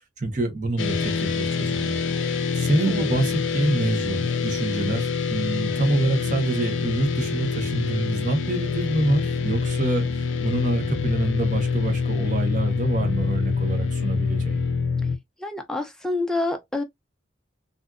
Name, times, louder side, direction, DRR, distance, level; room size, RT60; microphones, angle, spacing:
voice 1, 0.2-2.0 2.2-10.0 10.4-14.6, right 2 dB, 40° right, 0.8 m, -26 dB
sound 1, 0.8-15.2, left 5 dB, 75° left, 0.5 m, -26 dB
voice 2, 15.4-16.8, left 2 dB, 5° left, 0.4 m, -27 dB
2.5 x 2.4 x 2.3 m
head